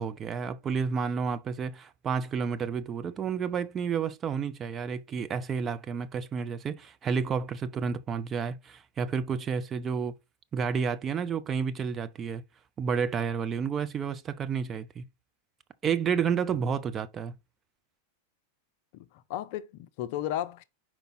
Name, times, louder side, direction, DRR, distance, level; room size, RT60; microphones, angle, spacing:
voice 1, 0.0-10.1 10.5-12.4 12.8-15.0 15.8-17.3, right 6 dB, 25° right, 0.5 m, -30 dB
voice 2, 18.9-20.6, left 12 dB, 50° left, 0.5 m, -34 dB
5.2 x 4.5 x 4.1 m
figure-of-eight pair, 90°, 0 cm